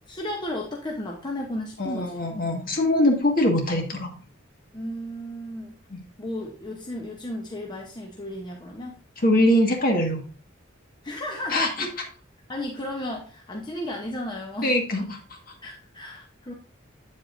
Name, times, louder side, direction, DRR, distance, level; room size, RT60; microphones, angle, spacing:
voice 1, 0.1-2.3 4.7-5.8 6.2-9.0 11.0-11.9 12.5-14.7 15.6-16.5, left 1 dB, 20° left, 0 dB, 0.8 m, -34 dB
voice 2, 1.8-4.1 5.9-6.0 9.2-10.2 11.5-11.9 14.6-15.2, left 1 dB, 45° left, 2 dB, 1.7 m, -22 dB
8.3 x 7.7 x 2.6 m, 0.39 s
head